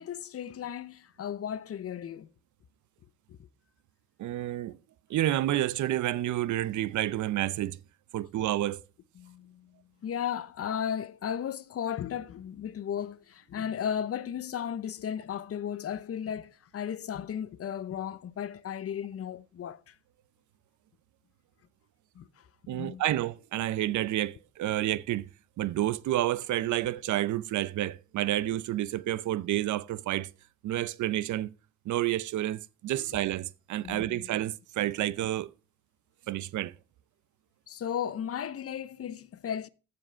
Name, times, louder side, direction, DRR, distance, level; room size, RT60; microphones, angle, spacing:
voice 1, 0.0-2.3 3.3-3.5 9.2-9.8 10.0-20.0 22.1-22.5 22.7-23.0 23.8-23.9 33.0-33.2 33.8-34.3 37.7-39.7, left 9 dB, 50° left, 0.8 m, -35 dB
voice 2, 4.2-4.8 5.1-7.8 8.1-8.8 22.7-25.3 25.6-30.3 30.6-31.5 31.9-35.5 36.3-36.7, right 14 dB, 75° right, 0.7 m, -29 dB
14.5 x 5.3 x 5.6 m
cardioid pair, 90°, 30 cm